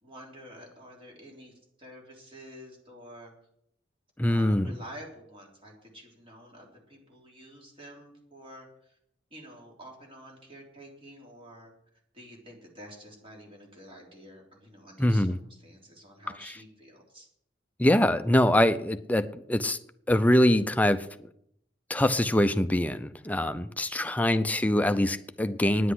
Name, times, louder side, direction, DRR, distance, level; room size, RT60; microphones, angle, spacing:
voice 1, 0.0-1.5 1.8-3.3 4.3-9.0 9.3-11.7 12.1-17.3 24.0-24.5, equal, 30° right, -1 dB, 3.5 m, -49 dB
voice 2, 4.2-4.8 15.0-15.4 17.8-19.8 20.1-21.1 21.9-25.9, left 1 dB, 10° left, 10 dB, 0.6 m, -24 dB
10.0 x 8.1 x 9.7 m, 0.73 s
head